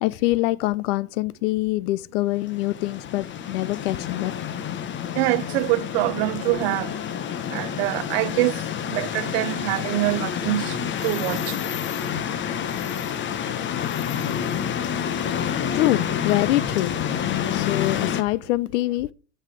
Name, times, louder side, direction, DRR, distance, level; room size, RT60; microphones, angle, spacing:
voice 1, 0.0-4.3 15.7-17.0 17.5-19.1, left 17 dB, 55° left, 0.7 m, -24 dB
sound 1, 2.4-18.2, left 9 dB, 25° left, 1.0 m, -28 dB
voice 2, 5.2-6.9 7.5-8.6 8.9-11.6, right 19 dB, 45° right, 0.5 m, -25 dB
14.5 x 5.7 x 4.8 m
hypercardioid pair, 120°, 45 cm